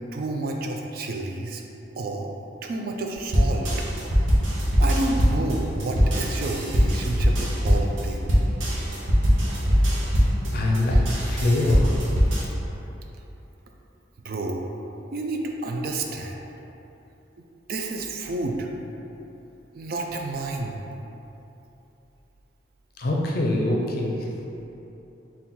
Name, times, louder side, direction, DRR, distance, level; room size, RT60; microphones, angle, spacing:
voice 1, 0.1-1.6 1.9-2.3 2.6-3.9 4.8-8.3 14.2-14.7 15.1-16.4 17.7-18.7 19.7-20.8, right 2 dB, 50° right, 2 dB, 0.3 m, -30 dB
sound 1, 3.3-12.4, equal, 85° right, 0.7 m, -22 dB
voice 2, 10.5-11.9 23.0-24.3, left 1 dB, 50° left, -1 dB, 0.5 m, -24 dB
4.2 x 2.3 x 3.6 m, 3.0 s
head